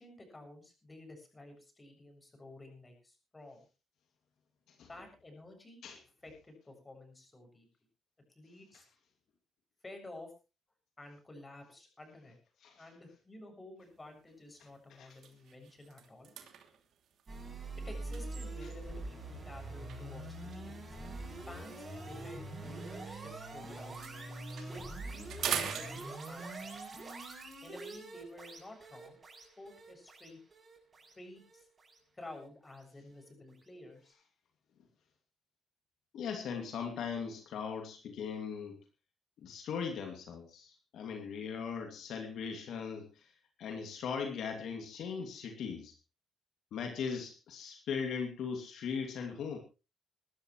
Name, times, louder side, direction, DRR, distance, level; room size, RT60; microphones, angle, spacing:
voice 1, 0.0-3.6 4.9-5.8 6.2-7.7 8.4-8.9 9.8-10.3 11.0-12.4 12.8-16.3 17.9-20.9 21.5-24.3 24.7-26.8 27.6-30.4 31.2-31.7 32.1-34.2, left 2 dB, 20° left, 5 dB, 7.1 m, -52 dB
sound 1, 13.9-14.2 14.6-14.7 15.1-19.0 19.9-23.5 23.7-26.6, right 8 dB, 70° right, 3.0 m, -43 dB
sound 2, 17.3-32.4, right 2 dB, 35° right, 7.8 m, -44 dB
voice 2, 36.1-38.8 39.4-43.3 43.6-45.9 46.7-49.6, left 6 dB, 75° left, 4 dB, 2.6 m, -39 dB
22.0 x 12.5 x 3.2 m, 0.31 s
cardioid pair, 90°, 0 cm